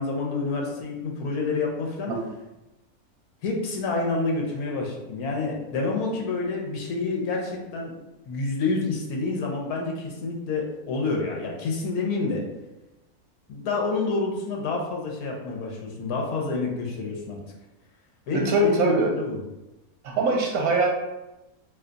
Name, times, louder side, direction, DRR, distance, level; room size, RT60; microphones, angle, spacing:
voice 1, 0.0-2.1 3.4-7.9 8.3-12.4 13.5-17.4 18.3-19.4, left 3 dB, 80° left, 0 dB, 1.2 m, -28 dB
voice 2, 18.3-19.1 20.0-20.9, right 2 dB, 75° right, -1 dB, 1.0 m, -22 dB
2.8 x 2.3 x 3.8 m, 0.99 s
omnidirectional pair, 1.6 m